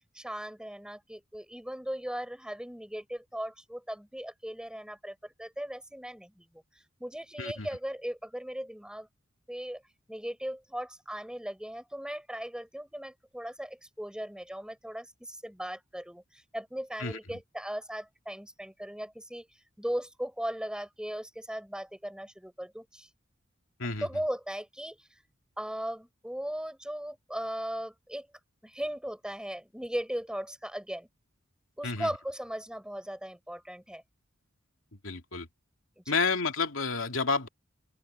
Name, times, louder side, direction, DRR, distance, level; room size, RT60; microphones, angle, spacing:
voice 1, 0.1-9.1 9.5-9.8 10.1-19.5 19.8-23.1 24.0-25.1 25.6-28.3 28.6-31.1 31.8-34.0 36.0-36.2, equal, 5° right, 5.3 m, -38 dB
voice 2, 35.0-35.5 36.1-37.5, left 4 dB, 80° left, 2.6 m, -30 dB
open air
head